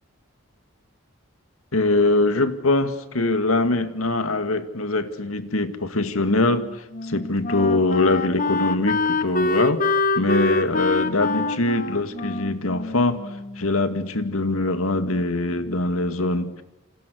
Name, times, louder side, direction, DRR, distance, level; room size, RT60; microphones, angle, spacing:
voice 1, 1.7-13.3 13.6-16.6, left 2 dB, 80° left, 9 dB, 2.1 m, -23 dB
Wind instrument woodwind instrument, 6.4-13.7, left 3 dB, 40° left, 1.3 m, -26 dB
28.5 x 27.5 x 6.4 m, 0.99 s
head